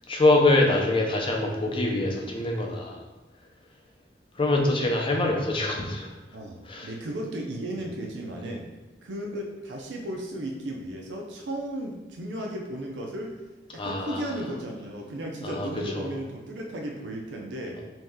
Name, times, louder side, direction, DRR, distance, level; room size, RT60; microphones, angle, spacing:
voice 1, 0.1-3.0 4.4-6.1 6.7-6.9 13.8-14.2 15.4-15.7 16.0-16.1, left 2 dB, 30° left, 1 dB, 0.5 m, -24 dB
voice 2, 6.3-8.7 9.0-13.4 13.7-17.8, right 1 dB, 90° right, 1 dB, 0.5 m, -35 dB
3.1 x 2.8 x 3.6 m, 1.1 s
head